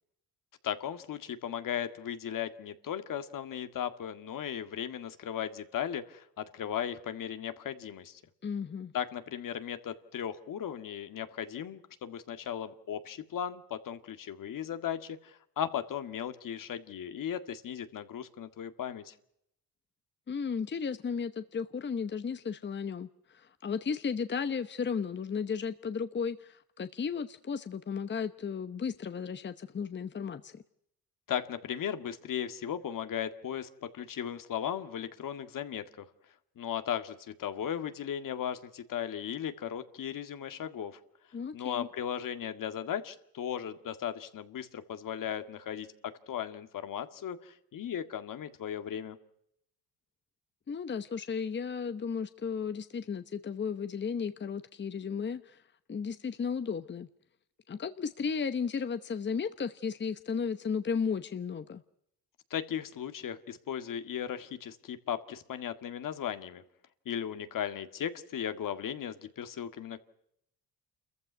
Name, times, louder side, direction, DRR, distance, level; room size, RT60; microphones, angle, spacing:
voice 1, 0.6-8.2 8.9-19.1 31.3-36.1 36.6-41.0 41.5-49.2 62.5-66.6 67.1-70.0, left 9 dB, 60° left, 9 dB, 1.9 m, -37 dB
voice 2, 8.4-8.9 20.3-30.6 41.3-41.9 50.7-55.6 55.9-57.1 57.7-61.8, left 6 dB, 30° left, 11 dB, 1.0 m, -34 dB
28.0 x 15.0 x 9.4 m, 0.75 s
cardioid pair, 90°, 36 cm